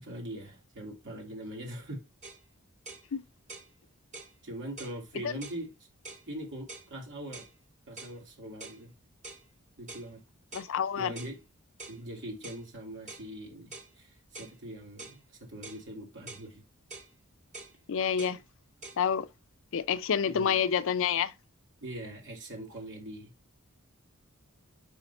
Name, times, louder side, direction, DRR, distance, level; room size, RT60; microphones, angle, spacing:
voice 1, 0.0-2.0 4.4-5.7 6.3-7.5 7.9-8.9 9.8-10.2 11.0-11.4 11.9-16.6 20.3-20.6 21.8-23.3, right 1 dB, 60° right, 2.9 m, -42 dB
sound 1, 2.2-2.4 2.8-3.1 3.5-3.7 4.1-4.3 4.8-5.0 5.4-5.6 6.0-6.3 6.7-6.9 7.3-7.5 8.0-8.2 8.6-8.8 9.2-9.4 9.9-10.1 10.5-10.7 11.1-11.4 11.8-12.0 12.4-12.6 13.1-13.3 13.7-13.9 14.3-14.6 15.0-15.2 15.6-15.8 16.3-16.5 16.9-17.1 17.5-17.7 18.2-18.4 18.8-19.0, right 3 dB, 35° right, 1.8 m, -46 dB
voice 2, 10.5-11.1 17.9-18.4 19.0-19.3 19.7-21.3, left 7 dB, 65° left, 0.5 m, -28 dB
5.6 x 4.9 x 4.1 m
head